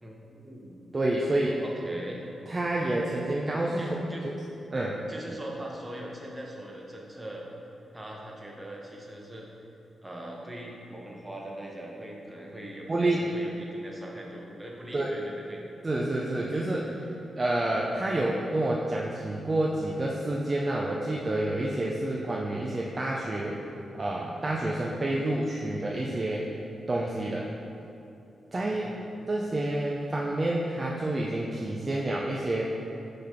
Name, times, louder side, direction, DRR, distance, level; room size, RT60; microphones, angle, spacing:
voice 1, 0.0-0.8 1.6-2.3 3.8-4.3 5.1-7.4 7.9-9.5 10.0-15.6 28.6-29.1, right 1 dB, 15° right, -2 dB, 1.0 m, -41 dB
voice 2, 0.9-1.6 2.5-4.4 4.7-5.0 12.9-13.2 14.9-15.1 15.8-17.1 17.4-23.6 23.9-26.5 26.9-27.5 28.5-28.9 29.3-32.6, right 1 dB, 30° right, -3 dB, 0.5 m, -28 dB
5.8 x 3.4 x 5.7 m, 2.9 s
cardioid pair, 90°, 0 cm